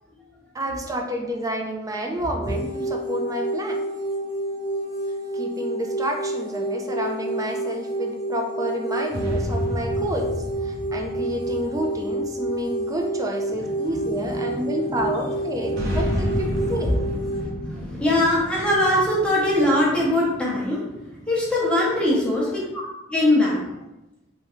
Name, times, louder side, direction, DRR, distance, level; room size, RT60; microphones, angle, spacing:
voice 1, 0.5-3.8 5.3-10.3 10.6-17.0 18.8-19.1 21.7-22.3, right 1 dB, 20° right, 2 dB, 0.4 m, -29 dB
sound 1, 2.4-17.4, right 1 dB, 30° left, 0.6 m, -29 dB
sound 2, 9.1-12.8 15.7-19.5, equal, 70° right, 1.1 m, -30 dB
voice 2, 14.4-15.0 15.5-15.8 16.2-22.6 23.1-23.7, left 1 dB, 5° left, -6 dB, 0.9 m, -23 dB
3.5 x 2.2 x 3.0 m, 0.95 s
head